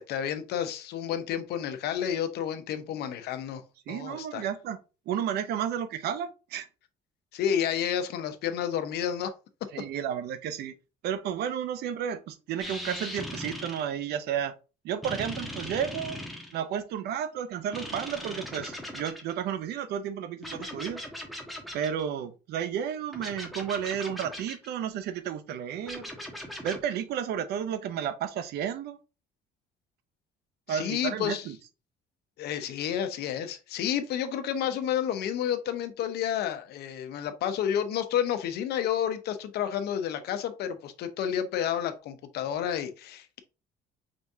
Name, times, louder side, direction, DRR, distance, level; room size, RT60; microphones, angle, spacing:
voice 1, 0.0-3.6 3.9-4.4 7.3-9.3 30.7-31.5 32.4-43.4, left 9 dB, 70° left, 0.8 m, -30 dB
voice 2, 3.9-4.8 5.1-6.7 9.7-10.7 11.0-14.6 14.8-16.2 16.5-21.0 21.7-26.1 26.6-29.0 30.7-31.6, right 9 dB, 75° right, 0.7 m, -32 dB
sound 1, 12.6-13.9 15.0-16.6 17.7-19.3 20.4-22.0 23.1-24.7 25.8-26.8, left 1 dB, ahead, 1.2 m, -39 dB
5.1 x 3.5 x 2.7 m
cardioid pair, 110°, 17 cm